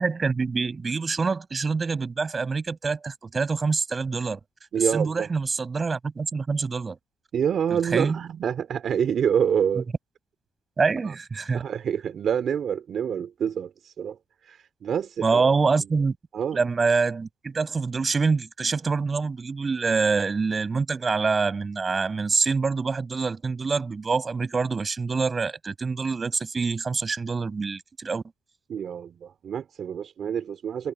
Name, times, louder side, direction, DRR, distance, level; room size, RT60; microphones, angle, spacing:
voice 1, 0.0-4.4 4.9-7.0 7.7-8.2 10.8-11.6 15.2-16.2 16.5-28.2, right 4 dB, 35° right, 7.4 m, -25 dB
voice 2, 4.7-5.3 7.3-9.8 11.0-11.1 11.5-14.2 14.5-15.6 16.3-16.6 28.7-30.9, right 8 dB, 60° right, 5.0 m, -27 dB
cardioid pair, 90°, 0 cm